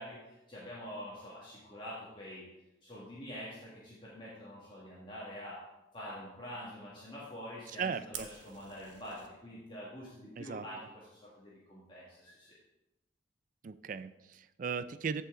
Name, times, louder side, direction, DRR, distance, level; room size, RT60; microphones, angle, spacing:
voice 1, 0.0-2.4 2.8-5.6 5.9-12.5, equal, 25° left, -7 dB, 1.9 m, -46 dB
voice 2, 7.8-8.3 10.4-10.6 13.6-15.2, right 6 dB, 45° right, 14 dB, 0.3 m, -37 dB
Fire, 8.1-9.3, right 8 dB, 85° right, 1.1 m, -47 dB
14.5 x 5.6 x 3.8 m, 0.97 s
head